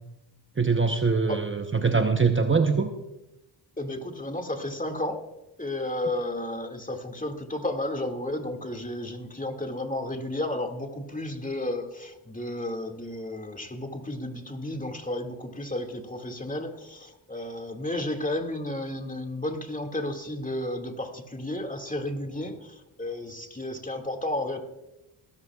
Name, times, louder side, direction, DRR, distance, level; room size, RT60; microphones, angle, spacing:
voice 1, 0.6-2.9, right 4 dB, 25° right, 6 dB, 0.9 m, -23 dB
voice 2, 3.8-5.2 5.6-24.6, left 1 dB, 15° left, 3 dB, 2.2 m, -32 dB
21.0 x 14.0 x 2.4 m, 0.98 s
cardioid pair, 60°, 46 cm